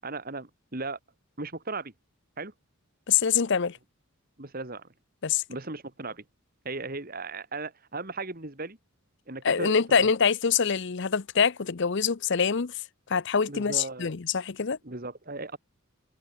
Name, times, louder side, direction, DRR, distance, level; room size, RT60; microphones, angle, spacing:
voice 1, 0.0-1.0 1.4-1.9 2.4-2.5 4.4-4.9 5.5-6.2 6.6-8.8 9.3-10.1 13.5-14.1 14.8-15.6, right 3 dB, 40° right, 2.1 m, -36 dB
voice 2, 3.1-3.8 5.2-5.4 9.4-12.7 13.1-14.8, left 6 dB, 55° left, 0.6 m, -25 dB
open air
head